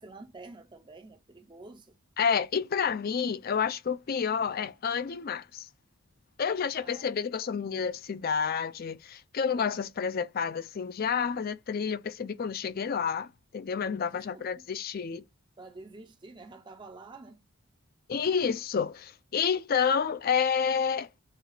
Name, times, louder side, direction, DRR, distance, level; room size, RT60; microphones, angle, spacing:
voice 1, 0.0-2.0 6.8-7.2 14.1-14.6 15.6-17.4, right 3 dB, 20° right, 0.5 m, -49 dB
voice 2, 2.2-5.7 6.4-15.2 18.1-21.1, left 6 dB, 45° left, 0.3 m, -29 dB
6.4 x 2.3 x 2.3 m
head